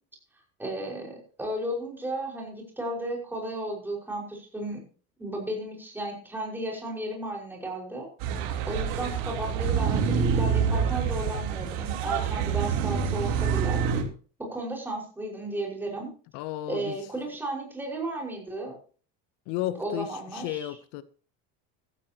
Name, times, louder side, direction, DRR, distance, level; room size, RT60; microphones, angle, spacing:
voice 1, 0.6-4.8 5.2-8.1 8.7-13.8 14.5-16.1 16.7-18.8 19.7-20.7, right 1 dB, 5° right, 5.6 m, -34 dB
sound 1, 8.2-14.0, right 7 dB, 70° right, 3.7 m, -27 dB
voice 2, 16.3-17.0 19.5-21.0, left 14 dB, 70° left, 1.0 m, -33 dB
15.0 x 15.0 x 3.0 m
cardioid pair, 165°, 32 cm